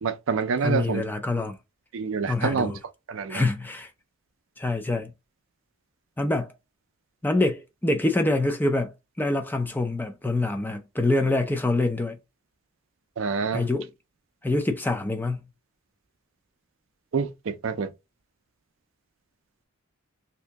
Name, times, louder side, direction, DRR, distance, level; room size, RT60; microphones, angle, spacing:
voice 1, 0.0-1.0 1.9-2.7 3.1-3.5 13.2-13.7 17.1-17.9, right 5 dB, 65° right, 0.5 m, -27 dB
voice 2, 0.6-1.6 2.3-2.8 3.3-3.9 4.6-5.1 6.2-6.5 7.2-12.2 13.5-13.9 14.4-15.5, left 2 dB, 10° left, 0.4 m, -25 dB
2.8 x 2.7 x 3.4 m
head